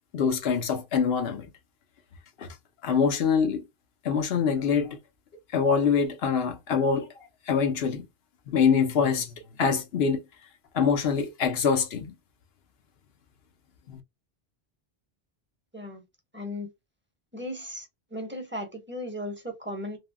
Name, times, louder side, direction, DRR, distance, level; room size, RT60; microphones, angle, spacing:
voice 1, 0.1-1.5 2.4-2.5 2.8-3.6 4.0-5.0 5.5-7.1 7.5-8.1 8.5-10.2 10.7-12.1 13.9-14.0, left 6 dB, 70° left, 1.0 m, -24 dB
voice 2, 16.3-16.7 17.3-17.9 18.1-20.0, left 1 dB, 10° right, 0.9 m, -36 dB
3.3 x 2.2 x 2.2 m
omnidirectional pair, 1.1 m